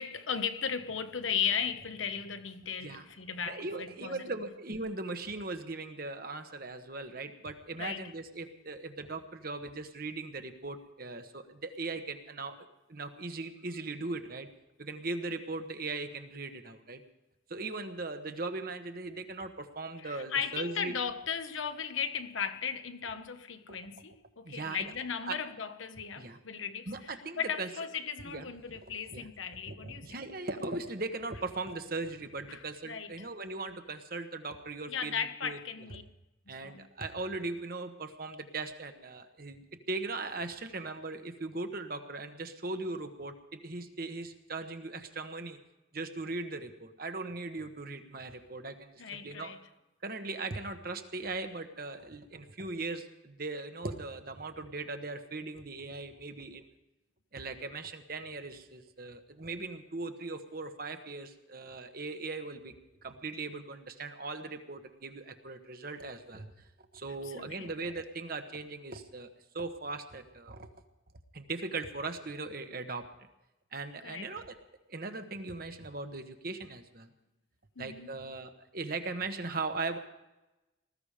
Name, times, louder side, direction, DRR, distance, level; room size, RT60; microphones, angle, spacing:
voice 1, 0.0-4.3 7.8-8.1 20.0-30.2 32.5-33.3 34.9-36.0 36.5-36.8 49.0-49.6 67.2-67.7 74.0-74.3 77.8-78.1, left 7 dB, 80° left, 1.1 m, -36 dB
voice 2, 3.4-14.5 14.8-17.0 17.5-21.0 23.7-23.8 24.4-24.9 25.3-25.4 26.2-26.4 26.9-27.7 28.2-28.8 29.1-29.3 29.7-35.6 36.5-45.6 45.9-49.5 50.0-56.7 57.3-62.7 63.0-69.3 69.5-70.7 71.3-73.1 73.7-74.6 74.9-77.1 77.8-80.0, right 3 dB, 50° right, 1.3 m, -39 dB
19.5 x 14.0 x 5.0 m
head